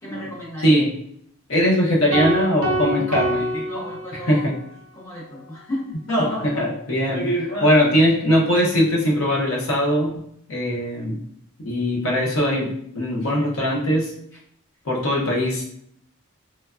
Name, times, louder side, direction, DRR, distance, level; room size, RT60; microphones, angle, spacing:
voice 1, 0.0-0.8 2.9-3.2 3.6-4.5 4.9-6.0, left 1 dB, 15° left, -6 dB, 0.7 m, -34 dB
voice 2, 1.5-3.9 4.3-4.5 6.1-10.1 10.5-11.2 11.6-14.1 14.8-15.7, equal, 70° left, -3 dB, 0.7 m, -20 dB
sound 1, 2.1-4.6, right 1 dB, 65° right, 0.4 m, -26 dB
3.2 x 2.2 x 2.3 m, 0.70 s
head